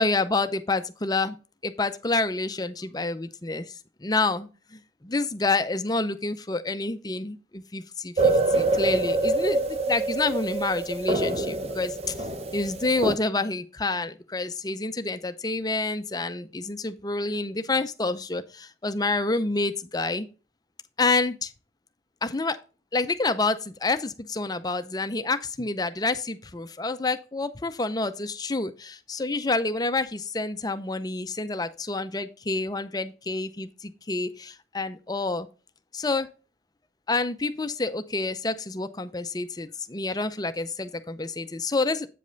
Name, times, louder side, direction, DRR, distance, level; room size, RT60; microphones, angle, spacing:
voice 1, 0.0-1.4 1.6-12.1 12.5-20.3 21.0-21.5 22.2-22.6 22.9-35.5 35.9-36.3 37.1-42.1, left 3 dB, 20° left, 10 dB, 0.5 m, -28 dB
sound 1, 8.2-13.1, right 2 dB, 35° right, 0.7 m, -25 dB
8.4 x 5.3 x 3.9 m, 0.33 s
head